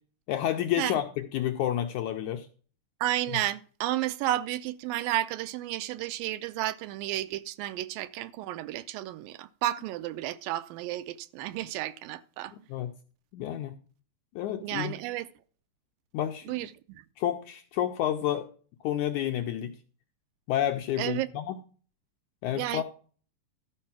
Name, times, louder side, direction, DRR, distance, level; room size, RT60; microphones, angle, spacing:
voice 1, 0.3-2.5 12.7-12.9 13.3-13.8 14.3-14.9 16.1-16.5 17.2-18.5 18.8-19.7 20.5-21.5 22.4-22.8, left 11 dB, 80° left, 1.8 m, -29 dB
voice 2, 3.0-12.5 14.6-15.3 16.5-17.0 21.0-21.3 22.5-22.8, right 14 dB, 80° right, 2.3 m, -32 dB
12.5 x 5.6 x 5.9 m
omnidirectional pair, 4.1 m